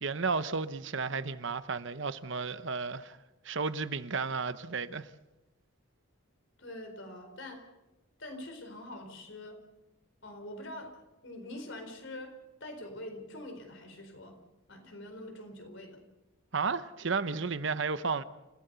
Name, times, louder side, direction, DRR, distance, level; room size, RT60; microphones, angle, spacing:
voice 1, 0.0-3.2 3.4-5.1 16.5-18.2, right 4 dB, 60° right, 0.9 m, -33 dB
voice 2, 6.6-7.6 8.2-9.6 10.2-12.3 12.6-14.4 14.7-16.0, left 1 dB, 60° left, 4.3 m, -44 dB
29.5 x 15.5 x 6.9 m
head